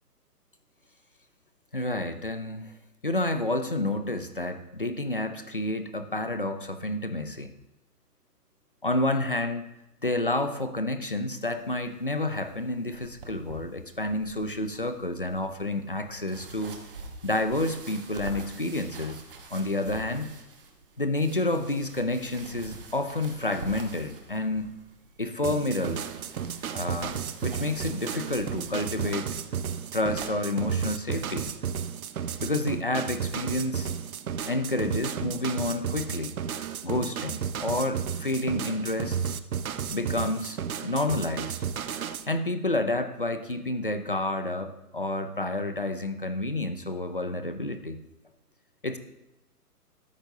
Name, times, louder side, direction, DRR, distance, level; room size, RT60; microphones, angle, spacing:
voice 1, 1.7-2.7 3.0-7.5 8.8-9.6 10.0-16.8 17.2-19.2 19.5-20.4 21.0-24.7 25.2-26.0 26.7-29.3 29.9-31.5 32.4-33.9 34.4-36.3 36.8-39.2 39.9-41.6 42.3-48.0 48.8-49.0, left 2 dB, 35° left, 9 dB, 0.4 m, -29 dB
sound 1, 11.5-30.3, right 3 dB, 35° right, 1.1 m, -46 dB
sound 2, 25.4-42.3, right 7 dB, 60° right, 0.7 m, -33 dB
13.0 x 10.0 x 2.7 m, 0.91 s
hypercardioid pair, 170°, 48 cm